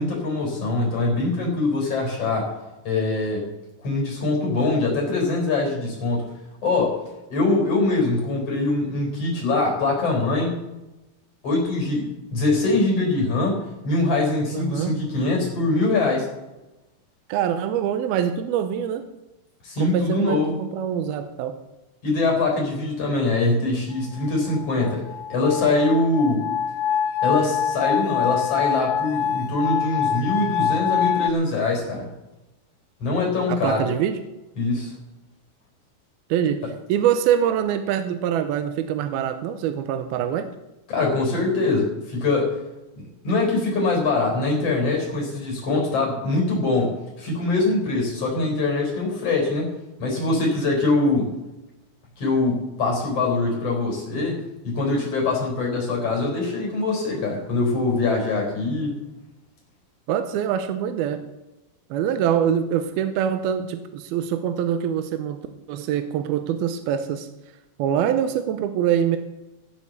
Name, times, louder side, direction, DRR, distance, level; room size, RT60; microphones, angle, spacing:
voice 1, 0.0-2.5 2.9-3.4 3.8-6.3 6.6-7.0 7.3-10.6 11.4-16.3 19.6-20.6 22.0-25.0 25.3-26.5 27.2-32.1 33.0-33.9 34.6-35.0 40.9-42.6 43.0-49.7 50.0-51.3 52.2-54.4 54.6-59.0, left 3 dB, 40° left, -1 dB, 5.3 m, -23 dB
voice 2, 14.5-14.9 17.3-19.0 19.8-21.6 33.5-34.2 36.3-36.6 36.9-40.5 60.1-61.2 61.9-65.4 65.7-67.3 67.8-69.2, right 9 dB, 80° right, 8 dB, 2.7 m, -24 dB
sound 1, 24.2-31.3, left 8 dB, 85° left, 1.9 m, -25 dB
15.5 x 8.0 x 7.1 m, 1.0 s
omnidirectional pair, 4.4 m